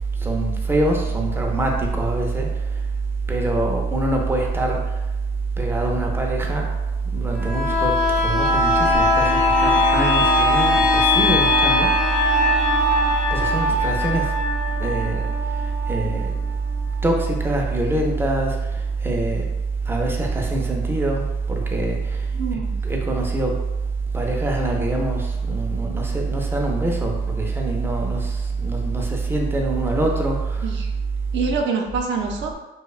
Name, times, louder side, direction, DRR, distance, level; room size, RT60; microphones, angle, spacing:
voice 1, 0.2-2.5 3.3-4.8 5.6-6.7 7.1-11.9 13.3-14.3 14.8-15.3 15.9-16.3 17.0-18.6 19.0-19.5 19.9-22.2 22.5-23.6 24.1-30.6, right 3 dB, 10° right, 0 dB, 0.4 m, -23 dB
sound 1, 7.4-16.9 17.3-17.4, left 2 dB, 70° left, 0.9 m, -20 dB
voice 2, 22.3-22.8 30.6-30.9 31.3-32.5, right 4 dB, 70° right, 1 dB, 0.5 m, -25 dB
2.7 x 2.1 x 2.3 m, 1.0 s
cardioid pair, 90°, 20 cm